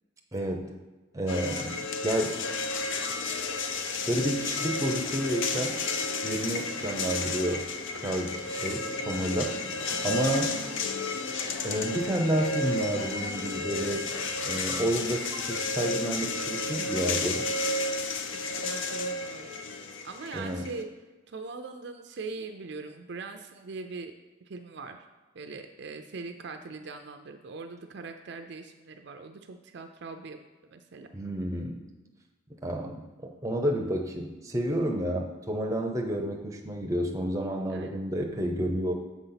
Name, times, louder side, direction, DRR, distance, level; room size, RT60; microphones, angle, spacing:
voice 1, 0.3-0.7 1.1-2.4 4.1-5.8 6.2-7.7 7.9-9.6 10.0-10.6 11.6-14.1 14.4-17.4 20.3-20.6 31.1-31.8 32.6-38.9, equal, 15° right, 2 dB, 0.6 m, -30 dB
sound 1, 1.3-20.8, left 3 dB, 65° left, 0.5 m, -32 dB
voice 2, 18.3-19.6 20.0-20.9 21.3-24.1 24.5-25.0 25.3-30.4 30.7-31.1 37.7-38.1, right 4 dB, 55° right, 6 dB, 0.4 m, -41 dB
7.3 x 4.0 x 5.7 m, 1.2 s
head